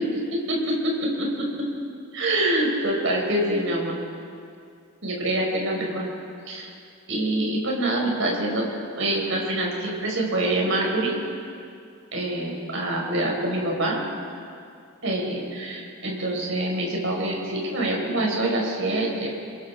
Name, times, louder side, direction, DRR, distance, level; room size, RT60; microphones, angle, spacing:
voice 1, 0.5-1.5 2.1-4.0 5.0-6.1 6.5-6.7 7.1-8.7 9.0-11.1 12.1-14.0 15.0-19.3, right 1 dB, 60° right, -1 dB, 5.7 m, -25 dB
29.0 x 22.0 x 4.9 m, 2.4 s
head